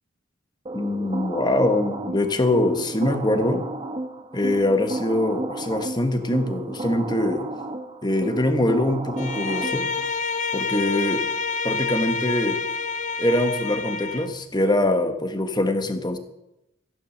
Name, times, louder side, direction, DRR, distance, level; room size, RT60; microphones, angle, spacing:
voice 1, 0.7-3.6 4.3-7.5 8.0-9.9 10.5-11.2 11.6-12.6 13.2-16.2, left 1 dB, 20° left, 7 dB, 1.3 m, -23 dB
sound 1, 0.7-10.1, right 2 dB, 30° right, 1.3 m, -33 dB
Bowed string instrument, 9.2-14.4, left 4 dB, 35° left, 0.7 m, -28 dB
14.5 x 10.5 x 6.5 m, 0.88 s
head